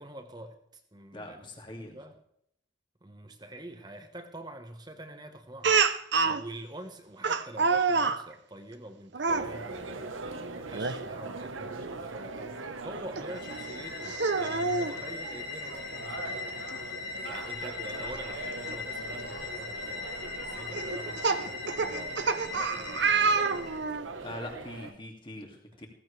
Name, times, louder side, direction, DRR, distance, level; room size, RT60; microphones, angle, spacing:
voice 1, 0.0-1.4 1.7-2.2 3.0-5.8 6.2-16.4 17.2-23.6, right 1 dB, 20° right, 6 dB, 1.2 m, -46 dB
voice 2, 1.1-2.0 24.2-25.9, left 1 dB, 25° left, 2 dB, 2.6 m, -42 dB
Speech, 5.6-6.4 7.2-8.2 9.1-9.5 10.7-11.0 11.4-11.5 13.2-13.3 14.1-14.9 16.3-16.4 16.7-16.8 18.7-18.8 19.4-19.6 20.7-24.1, right 4 dB, 60° right, 0.8 m, -27 dB
sound 1, 9.3-24.9, right 3 dB, 85° right, 1.3 m, -41 dB
sound 2, 13.3-23.8, left 4 dB, 65° left, 4.9 m, -40 dB
17.0 x 15.0 x 3.4 m, 0.71 s
head